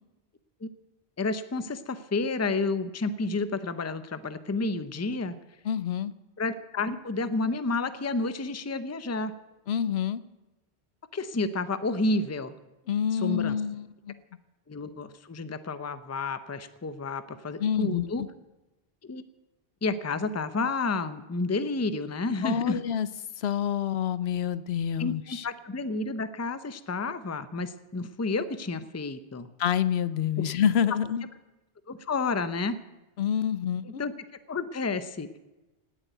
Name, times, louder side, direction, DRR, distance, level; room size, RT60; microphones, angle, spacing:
voice 1, 1.2-5.3 6.4-9.3 11.1-12.5 13.1-13.6 14.7-18.2 19.0-19.2 19.8-22.8 25.0-29.5 31.9-32.8 33.8-34.1 34.5-35.3, left 3 dB, 20° left, 12 dB, 0.6 m, -30 dB
voice 2, 5.6-6.1 9.7-10.2 12.9-14.2 17.6-18.3 22.4-23.1 23.4-25.5 29.6-31.2 33.2-34.0, left 8 dB, 80° left, 16 dB, 1.0 m, -27 dB
18.0 x 8.2 x 9.2 m, 1.1 s
omnidirectional pair, 1.0 m